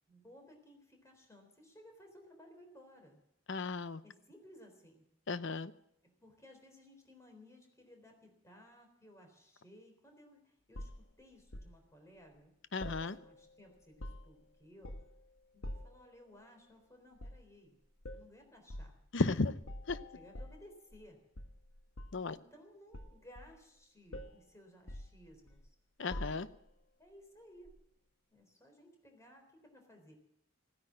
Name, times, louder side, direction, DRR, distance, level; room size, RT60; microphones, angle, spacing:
voice 1, 0.1-3.2 4.0-5.0 6.0-10.9 11.2-12.5 13.1-14.9 15.5-17.8 18.1-19.0 20.1-21.2 22.3-25.8 27.0-27.7 28.3-30.2, equal, 15° left, 3 dB, 3.8 m, -59 dB
voice 2, 3.5-4.0 5.3-5.7 12.7-13.2 19.1-19.5 19.9-20.0 22.1-22.4 26.0-26.5, left 3 dB, 65° left, 14 dB, 0.7 m, -34 dB
sound 1, 10.7-11.8 12.8-13.5 13.8-14.4 14.8-15.2 15.6-16.0 17.2-17.5 18.0-18.3 18.7-19.0 19.6-21.1 21.4-22.3 22.9-23.8 24.1-24.4 24.9-25.7 26.1-26.7 27.7-27.8, left 1 dB, 85° left, 1.4 m, -46 dB
16.0 x 10.0 x 7.6 m, 0.78 s
head